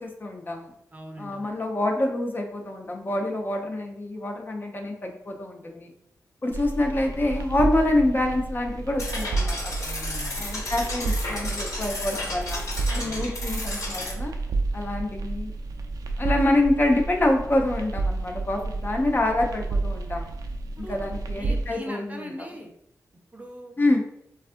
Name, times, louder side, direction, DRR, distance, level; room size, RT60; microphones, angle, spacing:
voice 1, 0.0-0.7 1.2-5.9 6.4-9.7 10.4-12.6 12.9-14.3 14.7-15.5 16.2-20.3 20.9-22.3 23.8-24.0, left 1 dB, 35° left, 2 dB, 0.4 m, -26 dB
voice 2, 0.9-1.5 9.8-10.5 13.0-13.3 20.6-22.7 23.3-23.7, equal, 25° right, 2 dB, 0.5 m, -41 dB
sound 1, 6.5-21.7, right 3 dB, 75° right, 0.3 m, -31 dB
sound 2, 9.0-14.1, left 2 dB, 60° left, 0.9 m, -33 dB
3.4 x 2.4 x 2.4 m, 0.75 s
wide cardioid pair, 80°, 6 cm